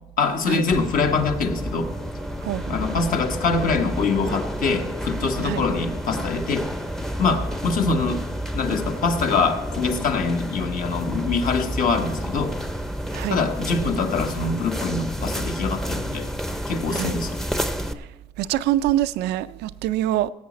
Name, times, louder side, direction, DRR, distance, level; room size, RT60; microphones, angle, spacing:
voice 1, 0.2-1.9 2.7-6.7 7.2-8.2 8.5-12.5 13.3-16.3 16.7-17.4, left 4 dB, 55° left, 1.3 m, -24 dB
sound 1, 0.7-17.9, equal, ahead, 0.7 m, -30 dB
voice 2, 2.4-2.8 5.4-5.7 13.1-13.4 16.9-17.2 18.0-18.1 18.4-20.3, right 13 dB, 80° right, 0.5 m, -25 dB
16.5 x 8.5 x 4.2 m
cardioid pair, 110°, 17 cm